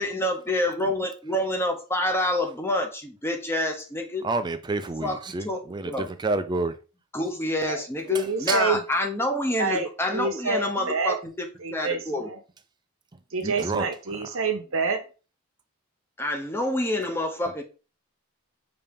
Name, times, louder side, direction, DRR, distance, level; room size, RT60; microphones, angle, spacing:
voice 1, 0.0-4.3 5.0-6.1 7.1-12.3 16.2-17.6, left 1 dB, 10° left, 0.7 m, -27 dB
voice 2, 4.2-6.7 8.5-8.6 13.4-13.9, right 3 dB, 20° right, 0.4 m, -28 dB
voice 3, 8.1-8.8 9.6-11.2 11.6-12.4 13.3-15.0, right 4 dB, 65° right, 0.9 m, -28 dB
5.2 x 2.8 x 3.5 m
head